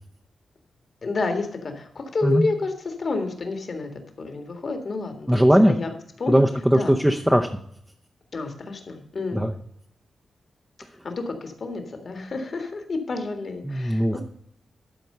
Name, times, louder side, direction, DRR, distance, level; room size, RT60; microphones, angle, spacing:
voice 1, 1.0-6.4 6.7-7.0 8.3-9.5 11.0-14.2, left 3 dB, 50° left, 6 dB, 1.8 m, -30 dB
voice 2, 5.3-5.8 6.3-7.5 9.3-9.5 13.7-14.2, equal, 5° right, 2 dB, 0.7 m, -19 dB
12.0 x 4.4 x 6.7 m, 0.68 s
cardioid pair, 95°, 0 cm